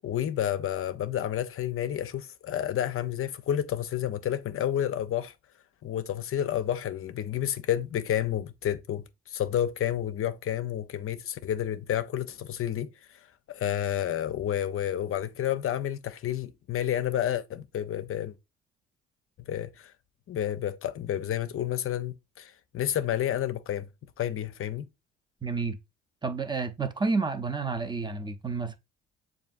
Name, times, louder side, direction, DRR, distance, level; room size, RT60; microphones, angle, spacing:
voice 1, 0.0-5.3 5.8-12.9 13.5-18.3 19.5-19.9 20.3-23.9 24.2-24.9, left 11 dB, 45° left, 0.5 m, -30 dB
voice 2, 25.4-25.8 26.2-28.8, right 4 dB, 15° right, 0.7 m, -30 dB
6.8 x 2.6 x 2.5 m
supercardioid pair, 60°, 30 cm